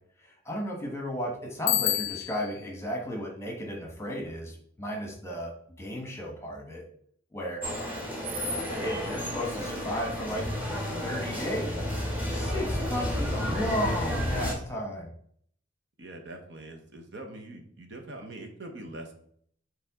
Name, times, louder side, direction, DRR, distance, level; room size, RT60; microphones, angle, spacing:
voice 1, 0.2-5.5 5.8-6.8 7.3-7.6 8.6-10.5 11.0-11.8 12.3-15.1, equal, 15° left, 0 dB, 1.2 m, -34 dB
Bicycle bell, 1.7-2.6, left 14 dB, 70° left, 0.3 m, -28 dB
sound 1, 7.6-14.5, equal, 10° right, 1.2 m, -31 dB
voice 2, 16.0-19.1, right 1 dB, 55° right, 3 dB, 1.0 m, -43 dB
7.7 x 3.4 x 3.6 m, 0.63 s
head